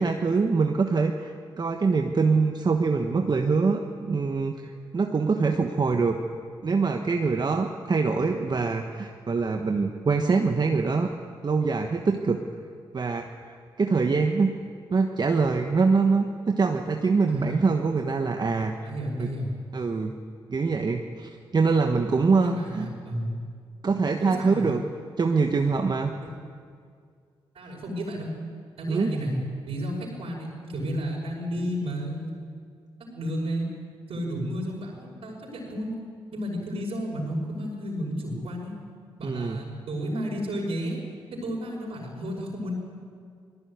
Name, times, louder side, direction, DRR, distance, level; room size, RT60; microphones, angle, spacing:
voice 1, 0.0-4.5 4.9-6.2 6.6-11.1 11.4-12.4 12.9-14.5 14.9-18.7 19.2-19.3 19.7-20.1 20.5-22.9 23.8-24.8 25.2-26.1 28.9-29.1 39.2-39.6, right 4 dB, 45° right, 4 dB, 1.3 m, -24 dB
voice 2, 18.8-19.5 22.4-23.4 24.1-24.7 27.5-28.3 28.8-29.4 29.7-32.3 33.1-33.7 34.1-35.9 36.3-38.7 39.2-41.0 41.3-42.7, equal, 70° right, -4 dB, 5.6 m, -32 dB
18.5 x 15.5 x 9.5 m, 2.2 s
supercardioid pair, 50°, 10 cm